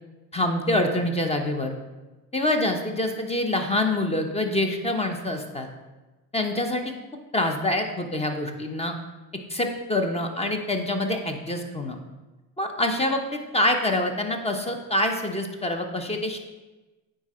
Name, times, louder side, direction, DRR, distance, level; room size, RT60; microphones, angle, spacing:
voice 1, 0.3-1.7 2.3-5.7 6.3-6.9 7.3-8.9 9.5-12.0 12.6-16.4, left 1 dB, 15° left, 5 dB, 1.0 m, -26 dB
9.2 x 3.8 x 4.3 m, 1.1 s
supercardioid pair, 90°, 41 cm